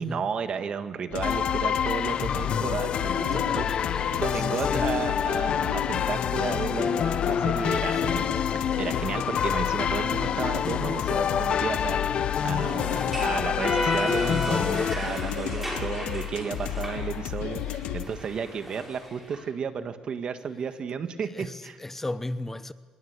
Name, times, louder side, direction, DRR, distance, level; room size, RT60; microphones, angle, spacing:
voice 1, 0.0-3.7 4.1-8.2 8.8-21.8, right 6 dB, 50° right, 1.8 m, -33 dB
sound 1, 1.1-18.1, left 11 dB, 90° left, 1.6 m, -33 dB
sound 2, 1.2-14.9, left 8 dB, 55° left, 0.8 m, -27 dB
voice 2, 3.3-4.1 4.4-4.9 7.8-8.3 21.3-22.7, left 2 dB, 15° left, 0.9 m, -36 dB
sound 3, 12.2-19.4, equal, 10° right, 8.0 m, -34 dB
25.5 x 21.5 x 8.3 m
cardioid pair, 110°, 2 cm